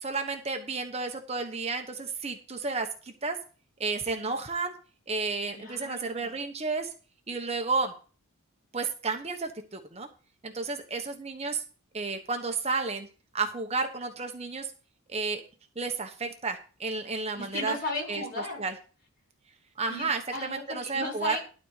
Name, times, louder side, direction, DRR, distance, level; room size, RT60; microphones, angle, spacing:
voice 1, 0.0-3.4 3.8-4.7 5.1-6.9 7.3-7.9 8.7-10.1 10.4-11.6 11.9-13.1 13.3-14.7 15.1-15.4 15.8-17.8 18.1-18.2 18.6-18.7 19.8-21.4, right 4 dB, 30° right, 4 dB, 1.1 m, -32 dB
voice 2, 5.5-6.4 17.3-18.6 19.9-21.4, left 2 dB, 45° left, -2 dB, 6.0 m, -36 dB
12.5 x 4.3 x 8.2 m, 0.36 s
head